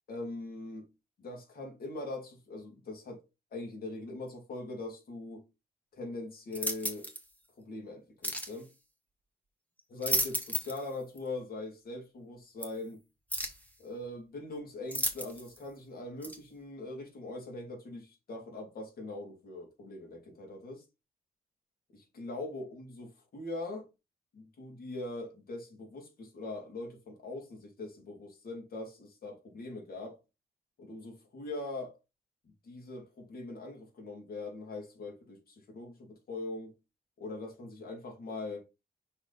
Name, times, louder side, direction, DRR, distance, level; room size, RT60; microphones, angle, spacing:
voice 1, 0.1-0.9 1.2-3.2 3.5-5.5 5.9-7.1 7.6-8.7 9.9-13.0 13.8-20.8 21.9-23.9 24.3-30.2 30.8-32.0 32.6-36.8 37.2-38.6, left 2 dB, 65° left, 2.8 m, -42 dB
sound 1, 6.5-7.2 8.2-8.6 9.8-10.9 11.2-11.3 12.6-12.7 13.3-13.7 14.9-15.6 16.2-16.4, equal, 10° left, 1.5 m, -33 dB
5.8 x 4.3 x 4.2 m
cardioid pair, 105°, 16 cm